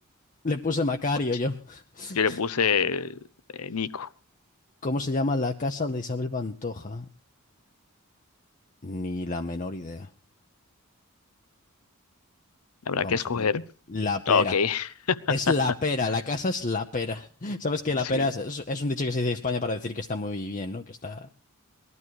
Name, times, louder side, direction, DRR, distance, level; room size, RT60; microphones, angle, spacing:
voice 1, 0.4-2.4 4.8-7.1 8.8-10.1 13.0-13.5 13.9-14.6 15.3-21.3, left 3 dB, 35° left, 0.8 m, -29 dB
voice 2, 2.1-3.2 3.6-4.1 12.9-13.6 14.3-15.2 18.1-18.3, left 6 dB, 80° left, 0.8 m, -25 dB
20.0 x 12.5 x 4.7 m
head